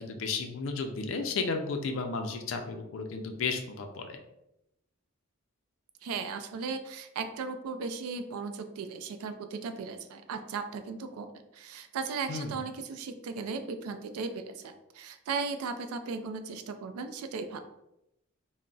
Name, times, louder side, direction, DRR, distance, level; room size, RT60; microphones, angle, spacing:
voice 1, 0.0-4.2 12.3-12.6, left 4 dB, 65° left, 4 dB, 0.4 m, -33 dB
voice 2, 6.0-17.6, right 4 dB, 85° right, 8 dB, 0.3 m, -37 dB
2.3 x 2.0 x 3.8 m, 0.85 s
head